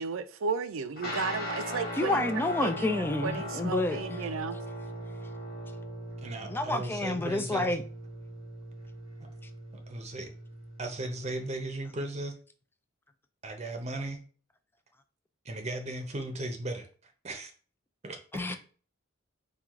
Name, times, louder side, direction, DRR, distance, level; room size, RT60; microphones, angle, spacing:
voice 1, 0.0-2.3 2.6-4.6, right 5 dB, 75° right, 0.5 m, -34 dB
sound 1, 1.0-11.5, equal, 50° left, 2.0 m, -39 dB
voice 2, 1.9-4.2 6.5-7.8 18.3-18.6, left 2 dB, 10° left, 0.3 m, -29 dB
voice 3, 6.2-7.7 9.9-10.3 10.8-12.3 13.4-14.2 15.4-17.5 18.0-18.5, right 2 dB, 35° right, 0.7 m, -37 dB
4.6 x 2.4 x 3.6 m
head